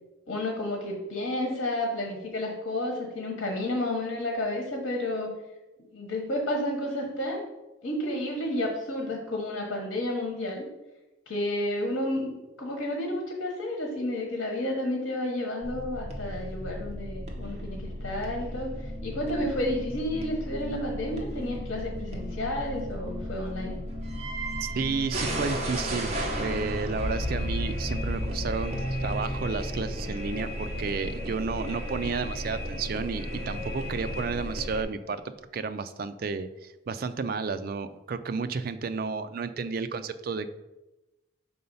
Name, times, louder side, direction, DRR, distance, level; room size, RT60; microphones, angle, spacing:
voice 1, 0.3-5.3 5.9-7.4 7.8-10.6 11.3-18.7 19.0-23.8, left 1 dB, 80° left, 1 dB, 1.2 m, -31 dB
sound 1, 15.6-34.8, equal, 35° right, 0.9 m, -34 dB
voice 2, 24.6-26.1 26.4-40.5, right 4 dB, 50° right, 10 dB, 0.4 m, -32 dB
sound 2, 28.7-32.0 32.4-32.5, equal, 10° right, 1.3 m, -39 dB
5.5 x 3.9 x 5.4 m, 1.0 s
head